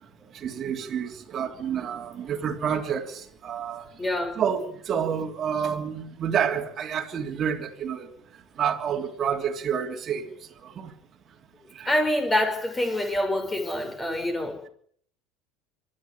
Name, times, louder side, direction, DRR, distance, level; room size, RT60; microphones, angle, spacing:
voice 1, 0.3-3.9 4.4-8.1 8.6-10.2 10.6-10.9 11.7-11.9, right 8 dB, 35° right, 3.3 m, -29 dB
voice 2, 4.0-4.4 11.8-14.7, left 1 dB, 15° left, 6.5 m, -26 dB
25.0 x 11.5 x 10.0 m
hypercardioid pair, 75°, 0 cm